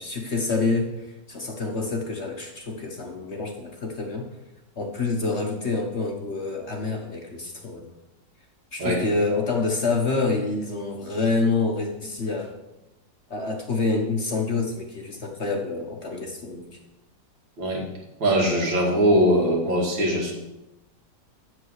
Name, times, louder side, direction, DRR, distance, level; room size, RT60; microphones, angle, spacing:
voice 1, 0.0-4.2 4.8-7.9 8.7-12.6 13.3-16.7, left 3 dB, 45° left, 2 dB, 1.2 m, -27 dB
voice 2, 18.2-20.3, equal, 80° right, -2 dB, 3.1 m, -21 dB
7.9 x 7.5 x 6.4 m, 0.93 s
omnidirectional pair, 2.0 m